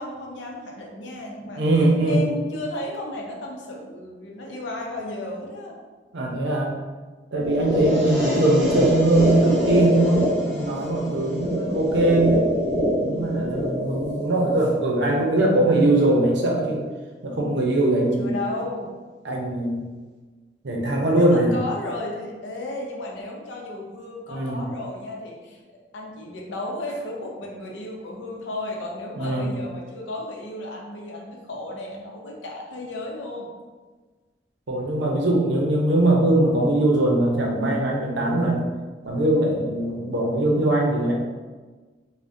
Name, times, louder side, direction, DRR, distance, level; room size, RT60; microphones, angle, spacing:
voice 1, 0.0-1.6 2.1-5.7 7.5-7.9 13.1-13.6 18.2-18.9 21.1-33.5, left 1 dB, 85° left, -1 dB, 0.6 m, -34 dB
voice 2, 1.4-2.2 6.1-6.8 7.3-12.4 13.0-16.8 17.2-18.3 19.2-19.8 20.6-21.5 24.3-24.6 29.1-29.5 34.7-38.6 39.0-41.1, right 1 dB, 65° right, -1 dB, 0.6 m, -21 dB
sound 1, 7.4-15.4, equal, 5° right, 0.7 m, -25 dB
3.4 x 2.1 x 2.6 m, 1.3 s
head